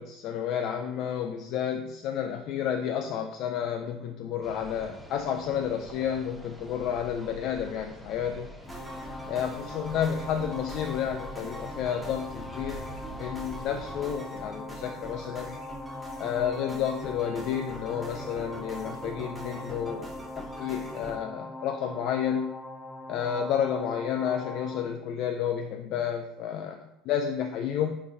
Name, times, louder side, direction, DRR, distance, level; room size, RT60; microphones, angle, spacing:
voice 1, 0.0-8.5 9.3-15.6 16.2-20.1 20.4-22.6 23.1-28.0, left 8 dB, 60° left, 5 dB, 0.3 m, -31 dB
sound 1, 4.4-14.2, equal, ahead, 0.7 m, -45 dB
sound 2, 8.6-21.2, right 1 dB, 15° right, 1.3 m, -44 dB
sound 3, 8.7-24.9, left 2 dB, 30° left, 0.8 m, -41 dB
4.5 x 3.8 x 2.6 m, 0.87 s
hypercardioid pair, 85°, 0 cm